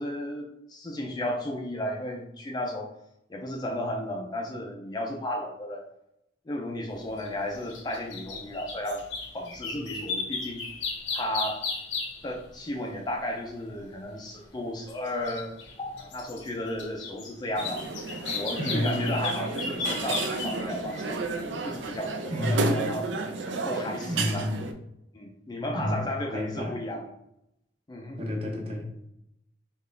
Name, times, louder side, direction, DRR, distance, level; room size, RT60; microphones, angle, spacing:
voice 1, 0.0-2.9 3.3-5.8 6.5-10.6 11.1-11.6 12.2-17.9 18.3-21.2 21.6-23.1 23.6-24.5 25.1-27.1 27.9-28.2, left 1 dB, 20° left, 1 dB, 0.4 m, -34 dB
sound 1, 7.2-12.4 14.7-21.2 21.7-21.8, left 4 dB, 75° left, 0.7 m, -35 dB
sound 2, 17.6-24.7, right 3 dB, 75° right, 0.4 m, -32 dB
voice 2, 18.6-19.3 22.3-22.8 24.1-24.6 25.7-26.0 26.3-26.7 28.2-29.1, left 1 dB, 30° right, 0 dB, 0.7 m, -30 dB
3.7 x 2.3 x 3.3 m, 0.80 s
head